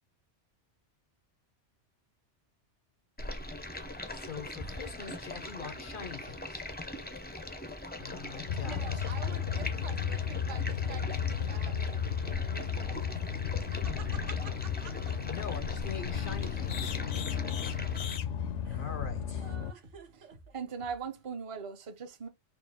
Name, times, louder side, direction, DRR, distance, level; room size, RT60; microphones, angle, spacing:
Stream, 3.2-18.2, left 1 dB, 15° left, 0.4 m, -41 dB
voice 1, 4.1-6.6 7.1-7.4 8.0-9.1 15.3-17.0 18.7-19.5, left 6 dB, 55° left, 0.6 m, -43 dB
sound 1, 8.5-19.7, left 8 dB, 80° left, 0.9 m, -34 dB
voice 2, 8.6-15.2 17.6-17.7 18.6-18.9 19.4-20.6, right 7 dB, 80° right, 1.3 m, -49 dB
sound 2, 14.5-21.3, right 1 dB, 50° right, 1.3 m, -57 dB
voice 3, 20.5-22.3, right 6 dB, 35° right, 0.7 m, -39 dB
4.3 x 2.5 x 3.4 m
omnidirectional pair, 1.2 m